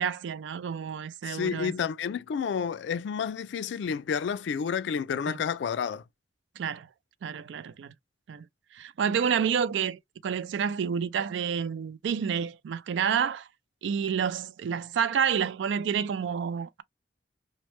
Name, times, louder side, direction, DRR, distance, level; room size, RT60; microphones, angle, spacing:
voice 1, 0.0-1.7 5.3-5.4 6.6-6.9 7.2-7.9 8.3-8.4 8.7-13.5 13.8-16.8, right 7 dB, 75° right, 0.3 m, -29 dB
voice 2, 1.2-6.0, left 7 dB, 70° left, 0.3 m, -30 dB
3.1 x 2.1 x 3.0 m
head